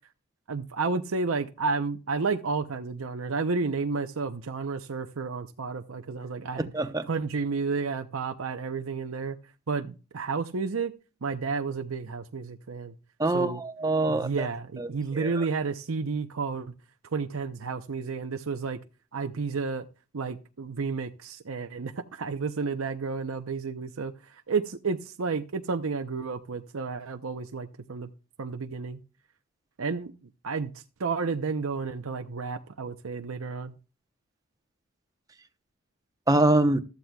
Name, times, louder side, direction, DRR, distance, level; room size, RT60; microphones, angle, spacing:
voice 1, 0.5-6.7 7.1-9.4 9.7-10.9 11.2-12.9 13.3-13.6 14.0-16.7 17.1-18.8 19.1-19.9 20.1-28.1 28.4-29.0 29.8-30.1 30.4-33.8, right 4 dB, 80° right, 7 dB, 0.7 m, -31 dB
voice 2, 6.7-7.0 13.2-14.5 14.8-14.9 15.1-15.4 36.3-36.8, right 2 dB, 15° right, 10 dB, 0.8 m, -24 dB
15.5 x 13.0 x 2.3 m, 0.33 s
head